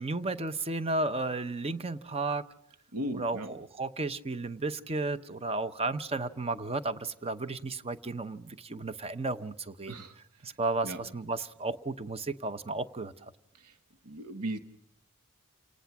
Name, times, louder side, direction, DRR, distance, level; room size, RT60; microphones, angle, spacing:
voice 1, 0.0-2.4 3.1-9.9 10.4-13.3, right 3 dB, 25° right, 13 dB, 0.8 m, -33 dB
voice 2, 2.9-3.5 9.9-10.5 10.8-11.0 13.5-13.8 14.0-14.6, right 1 dB, 80° right, 9 dB, 1.2 m, -37 dB
28.5 x 19.0 x 6.0 m, 0.75 s
head